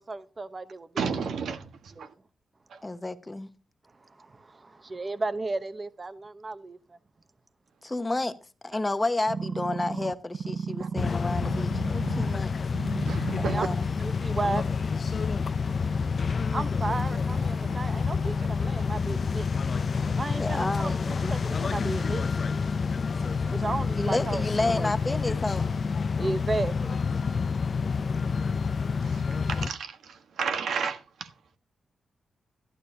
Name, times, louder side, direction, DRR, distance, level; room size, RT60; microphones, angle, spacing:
voice 1, 0.0-0.9 2.0-2.1 4.2-7.0 13.4-13.6 14.2-14.7 16.5-19.5 20.1-22.2 23.5-24.5 24.7-24.9 26.2-27.0, right 3 dB, 30° right, 0.9 m, -33 dB
voice 2, 1.0-2.1 2.7-2.8 8.7-8.8 10.8-10.9 13.0-13.7 23.4-23.5 28.9-31.3, right 6 dB, 80° right, 1.3 m, -33 dB
voice 3, 2.8-3.5 7.8-8.4 8.6-12.5 13.4-13.9 20.4-21.1 24.0-25.7, left 2 dB, 20° left, 0.9 m, -30 dB
sound 1, 9.3-12.4 12.7-13.7 14.3-14.4, right 5 dB, 60° right, 0.5 m, -34 dB
sound 2, 11.0-29.7, left 5 dB, 50° left, 0.5 m, -28 dB
12.5 x 12.0 x 2.8 m
cardioid pair, 90°, 0 cm